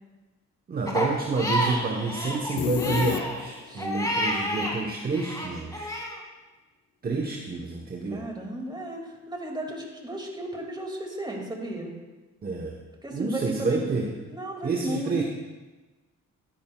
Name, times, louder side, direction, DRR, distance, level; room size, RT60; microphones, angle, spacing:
voice 1, 0.7-5.9 7.0-8.2 12.4-12.8 13.1-14.1 14.6-15.2, right 3 dB, 30° right, 1 dB, 1.0 m, -29 dB
Crying sobbing, 0.9-4.8 5.1-6.2, equal, 10° left, 2.0 m, -30 dB
sound 1, 2.6-3.8, left 9 dB, 55° left, 0.6 m, -30 dB
voice 2, 8.1-11.9 13.0-13.8 14.3-15.2, right 1 dB, 15° right, 0 dB, 2.1 m, -34 dB
13.0 x 10.5 x 2.3 m, 1.2 s
cardioid pair, 90°, 30 cm